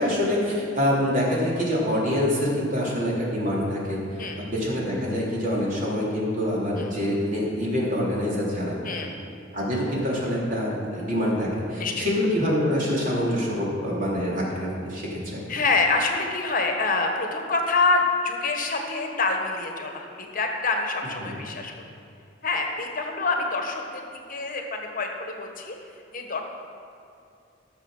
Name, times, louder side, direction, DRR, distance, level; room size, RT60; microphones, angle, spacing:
voice 1, 0.0-4.0 4.3-8.8 9.5-15.4 21.2-21.4, equal, 45° right, -5 dB, 3.4 m, -25 dB
voice 2, 8.8-9.1 11.8-12.1 15.5-21.7 22.4-25.8 26.1-26.4, left 3 dB, 50° left, 3 dB, 1.3 m, -26 dB
15.0 x 6.9 x 6.5 m, 2.6 s
head